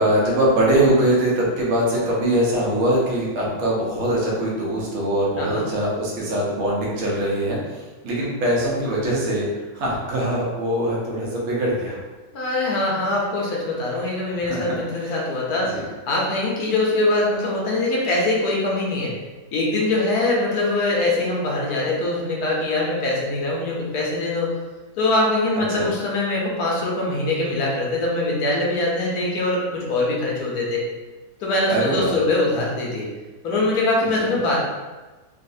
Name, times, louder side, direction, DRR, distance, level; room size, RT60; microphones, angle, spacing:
voice 1, 0.0-9.5 9.7-12.0 14.4-14.6 15.7-15.8 25.7-25.9 31.7-32.2, right 1 dB, 85° right, -4 dB, 1.7 m, -22 dB
voice 2, 12.3-19.1 19.5-24.5 25.0-30.8 31.4-33.1 33.4-34.6, left 2 dB, 65° left, -3 dB, 1.0 m, -23 dB
3.9 x 2.4 x 2.6 m, 1.2 s
omnidirectional pair, 2.2 m